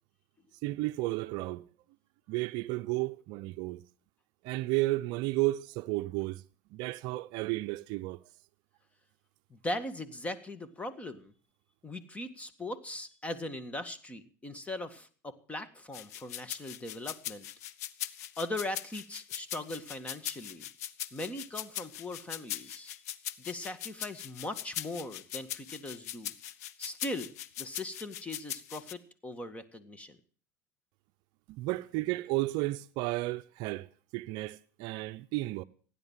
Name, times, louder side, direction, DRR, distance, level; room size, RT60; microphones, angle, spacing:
voice 1, 0.6-1.6 2.3-3.8 4.4-6.4 6.7-8.2 31.5-33.9 34.1-35.6, right 19 dB, 60° right, 0.6 m, -32 dB
voice 2, 9.5-11.3 11.8-17.5 18.4-20.6 21.1-23.0 23.4-26.3 26.8-27.3 27.6-30.2, left 1 dB, 15° left, 1.9 m, -39 dB
sound 1, 15.9-28.9, left 12 dB, 80° left, 0.9 m, -40 dB
16.0 x 10.0 x 7.4 m
supercardioid pair, 105°, 8 cm